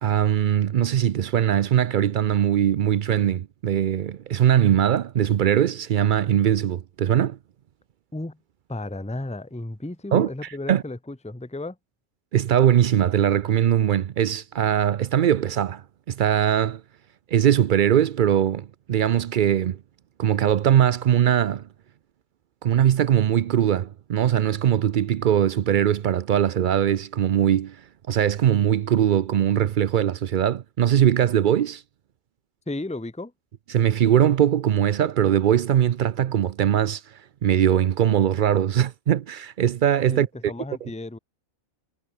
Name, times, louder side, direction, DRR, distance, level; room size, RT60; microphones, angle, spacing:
voice 1, 0.0-7.4 10.1-10.3 10.7-10.8 12.3-16.8 17.3-19.8 20.2-21.6 22.6-27.8 28.1-31.8 33.7-37.0 37.4-40.3, right 10 dB, 90° right, 0.4 m, -21 dB
voice 2, 8.7-11.8 32.7-33.3 40.1-41.2, left 2 dB, 5° left, 1.2 m, -33 dB
omnidirectional pair, 1.5 m